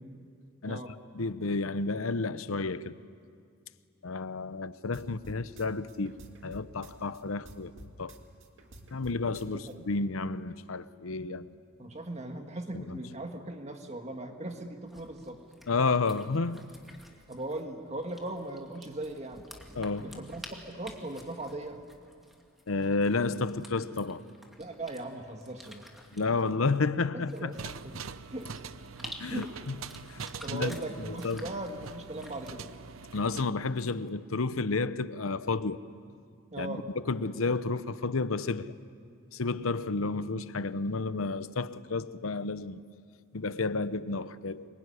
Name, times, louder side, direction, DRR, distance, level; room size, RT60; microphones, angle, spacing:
voice 1, 0.6-0.9 9.5-9.8 11.8-15.4 17.3-19.5 20.0-21.8 24.6-25.8 27.1-27.5 27.9-28.1 28.3-28.5 29.3-29.5 30.4-32.7 36.5-36.9, right 1 dB, 35° right, 1.7 m, -39 dB
voice 2, 1.1-3.0 4.0-6.2 6.4-7.7 8.0-8.1 8.9-11.5 12.7-13.0 15.7-16.6 19.8-20.2 22.7-24.2 26.1-27.5 29.2-30.2 30.5-30.8 31.1-31.5 33.1-35.8 36.6-36.8 37.0-38.7 39.3-42.8 43.3-44.7, left 3 dB, 85° left, 0.8 m, -31 dB
sound 1, 4.9-7.2 7.5-9.7, right 1 dB, 65° right, 2.6 m, -50 dB
sound 2, 14.9-34.1, equal, ahead, 2.5 m, -52 dB
sound 3, 27.5-33.4, right 5 dB, 85° right, 0.8 m, -43 dB
25.5 x 23.0 x 9.9 m
head